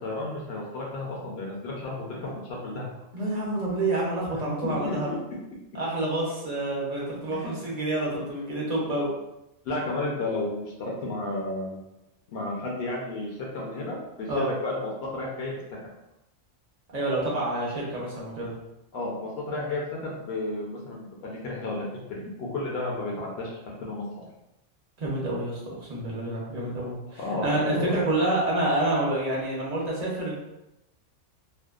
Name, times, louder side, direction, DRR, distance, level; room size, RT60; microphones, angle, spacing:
voice 1, 0.0-2.9 4.3-5.2 7.3-7.7 9.6-11.8 12.3-15.5 18.9-24.0 27.2-27.9, left 2 dB, 65° left, -3 dB, 0.7 m, -32 dB
voice 2, 3.1-5.1 5.7-9.1 14.3-14.5 16.9-18.5 25.0-30.4, right 2 dB, 45° right, -5 dB, 0.6 m, -28 dB
2.6 x 2.1 x 2.3 m, 0.90 s
omnidirectional pair, 1.3 m